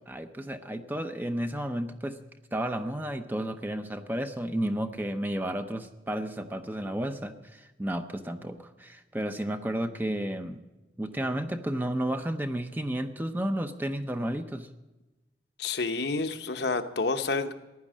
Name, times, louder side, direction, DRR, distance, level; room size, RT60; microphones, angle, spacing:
voice 1, 0.1-2.2 2.5-10.6 11.0-14.7, right 1 dB, 10° right, 8 dB, 0.7 m, -32 dB
voice 2, 15.6-17.5, left 3 dB, 60° left, 8 dB, 0.9 m, -29 dB
15.5 x 10.5 x 7.4 m, 1.1 s
head